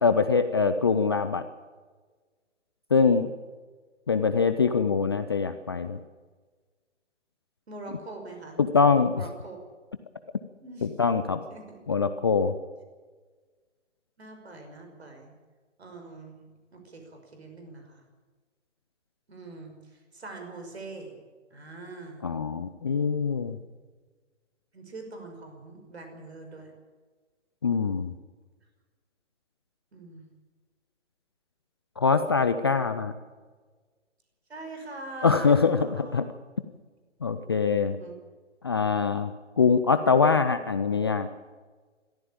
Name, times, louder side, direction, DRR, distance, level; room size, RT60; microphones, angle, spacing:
voice 1, 0.0-1.4 2.9-3.3 4.1-6.0 8.6-9.2 10.8-11.4 11.9-12.5 22.2-23.6 27.6-28.1 32.0-33.1 35.2-36.3 37.2-38.0 38.6-41.3, left 5 dB, 20° left, 10 dB, 0.5 m, -23 dB
voice 2, 7.7-8.6 9.2-9.6 10.6-10.9 11.5-11.8 14.2-15.3 15.8-16.4 16.7-18.0 19.3-21.2 21.5-22.3 24.7-26.7 29.9-30.3 34.5-36.2 37.3-37.5 37.9-38.1, right 2 dB, 60° right, 4 dB, 5.6 m, -43 dB
22.5 x 14.0 x 8.7 m, 1.4 s
figure-of-eight pair, 135°, 37 cm